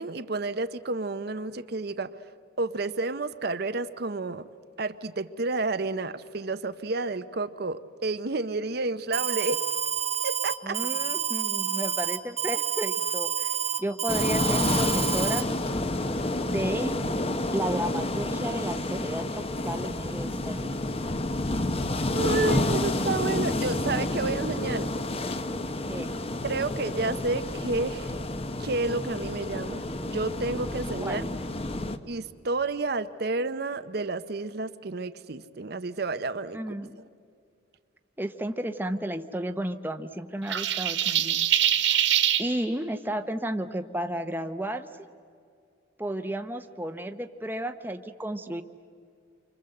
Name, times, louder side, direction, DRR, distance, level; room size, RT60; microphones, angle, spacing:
voice 1, 0.0-2.1 2.6-4.5 4.8-9.6 10.2-10.8 22.1-24.9 26.4-28.1 28.6-31.2 32.1-36.6, right 3 dB, 55° right, 11 dB, 0.8 m, -30 dB
Alarm, 9.1-15.4, right 9 dB, 35° right, 1.5 m, -29 dB
voice 2, 10.6-15.5 16.4-16.9 17.5-20.8 25.9-26.1 31.0-31.3 36.5-37.0 38.2-42.0 42.4-44.9 46.0-48.6, right 1 dB, 10° right, 7 dB, 0.9 m, -33 dB
sound 1, 14.1-32.0, left 2 dB, 30° left, 1.0 m, -29 dB
sound 2, 40.5-42.4, right 11 dB, 80° right, 2.1 m, -23 dB
29.5 x 25.5 x 7.8 m, 2.3 s
head